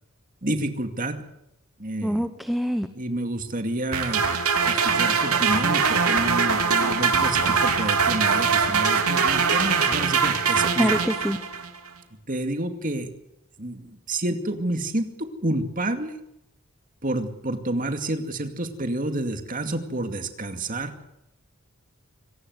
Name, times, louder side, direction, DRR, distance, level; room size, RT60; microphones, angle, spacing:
voice 1, 0.4-1.2 1.8-2.3 2.9-4.3 4.6-10.9 12.3-13.1 13.6-16.1 17.0-21.0, right 1 dB, 40° right, 7 dB, 2.4 m, -29 dB
voice 2, 2.0-2.9 10.8-11.4, equal, ahead, 9 dB, 0.9 m, -25 dB
sound 1, 3.9-11.7, right 5 dB, 85° right, 3.3 m, -22 dB
25.5 x 18.5 x 8.0 m, 0.84 s
head